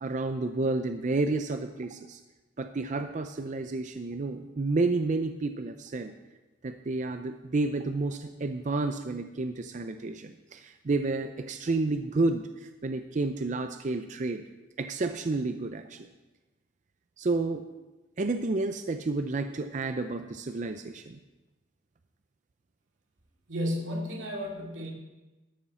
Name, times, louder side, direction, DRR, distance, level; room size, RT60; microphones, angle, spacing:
voice 1, 0.0-2.2 2.6-6.1 6.6-14.4 14.8-16.1 17.2-17.6 18.2-21.2, right 3 dB, 40° right, 8 dB, 0.5 m, -30 dB
voice 2, 23.5-24.9, equal, 90° right, -1 dB, 2.6 m, -33 dB
12.5 x 11.0 x 4.2 m, 1.1 s
head